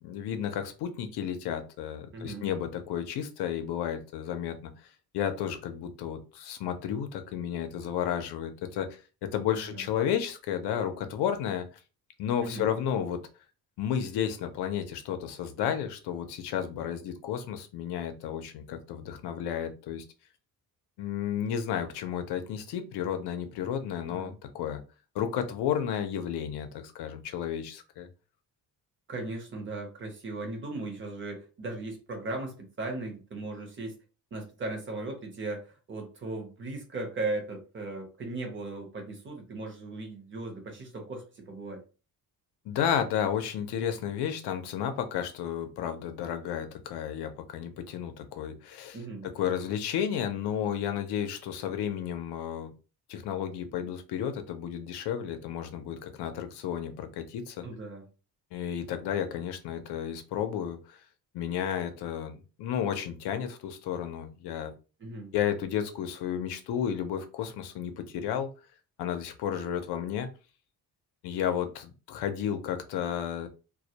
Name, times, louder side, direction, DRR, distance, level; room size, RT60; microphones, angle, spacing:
voice 1, 0.0-4.7 5.1-11.7 12.2-13.2 13.8-20.0 21.0-24.8 25.1-28.1 42.7-49.0 49.2-52.7 53.1-57.6 58.5-61.0 61.3-64.7 65.3-68.5 69.0-70.3 71.2-73.5, left 9 dB, 90° left, 8 dB, 0.6 m, -32 dB
voice 2, 2.1-2.5 9.7-9.9 12.4-12.7 24.1-24.3 29.1-34.0 34.3-41.8 48.9-49.3 57.6-58.1 65.0-65.3, right 2 dB, 30° right, 3 dB, 0.6 m, -37 dB
2.2 x 2.1 x 2.7 m, 0.33 s
cardioid pair, 165°, 38 cm